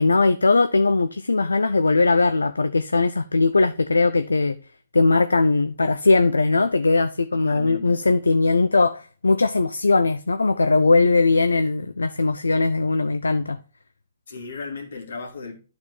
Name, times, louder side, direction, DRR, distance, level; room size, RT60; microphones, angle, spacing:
voice 1, 0.0-4.6 4.9-13.6, left 3 dB, 85° left, 0.4 m, -20 dB
voice 2, 7.3-8.0 14.3-15.6, left 4 dB, 70° left, 2.0 m, -36 dB
12.0 x 4.1 x 3.0 m
hypercardioid pair, 125°, 0 cm